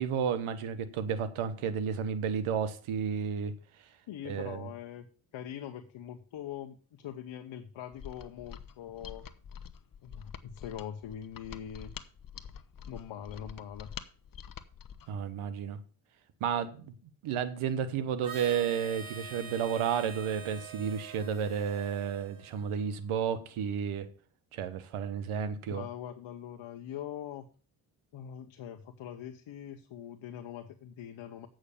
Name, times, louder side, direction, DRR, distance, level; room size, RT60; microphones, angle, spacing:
voice 1, 0.0-3.5 4.2-4.7 15.1-15.8 16.4-16.9 17.2-24.1 24.5-25.8, right 7 dB, 80° right, 1.3 m, -32 dB
voice 2, 4.1-5.1 5.3-9.3 10.0-11.9 12.9-13.9 25.7-27.5 28.1-31.5, left 10 dB, 65° left, 1.1 m, -42 dB
Mechanisms, 7.9-15.1, left 8 dB, 45° left, 1.0 m, -46 dB
Harmonica, 18.2-23.0, right 6 dB, 45° right, 1.9 m, -46 dB
8.3 x 6.4 x 7.1 m
supercardioid pair, 55°, 49 cm